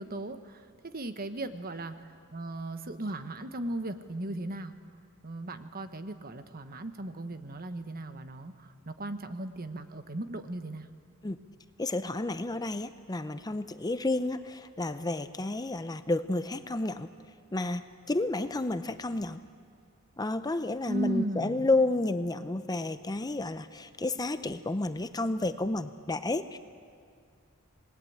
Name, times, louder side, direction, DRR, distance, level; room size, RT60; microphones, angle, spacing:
voice 1, 0.0-4.7 5.2-10.9 20.9-21.7, right 1 dB, 40° right, 9 dB, 1.2 m, -37 dB
voice 2, 11.8-17.1 17.5-19.4 20.2-26.6, left 2 dB, 15° left, 11 dB, 0.6 m, -31 dB
28.0 x 20.0 x 8.7 m, 2.2 s
head